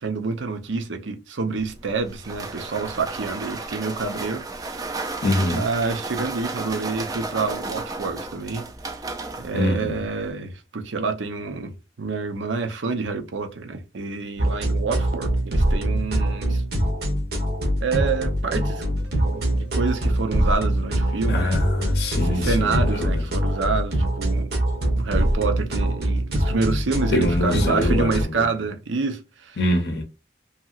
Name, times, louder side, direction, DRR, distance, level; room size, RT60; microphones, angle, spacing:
voice 1, 0.0-4.9 5.5-8.6 9.4-16.6 17.8-19.0 19.2-21.6 22.2-24.5 25.0-29.6, right 4 dB, 85° right, 0.6 m, -28 dB
sound 1, 1.6-10.3, right 3 dB, 20° right, 0.3 m, -33 dB
voice 2, 5.2-5.6 9.5-10.0 21.3-23.2 27.1-28.5 29.6-30.0, left 1 dB, 60° left, 0.6 m, -24 dB
sound 2, 14.4-28.2, right 1 dB, 55° right, 0.8 m, -23 dB
2.8 x 2.7 x 2.3 m
head